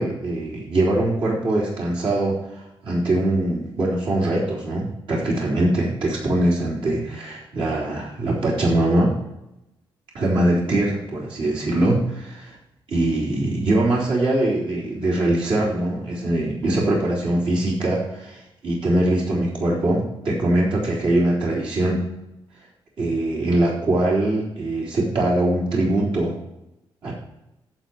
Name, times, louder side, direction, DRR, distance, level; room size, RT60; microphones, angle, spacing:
voice 1, 0.0-9.2 10.1-12.6 12.9-22.0 23.0-26.4 27.0-27.1, right 1 dB, 70° right, -5 dB, 3.7 m, -22 dB
11.5 x 7.1 x 4.6 m, 0.89 s
cardioid pair, 115°, 9 cm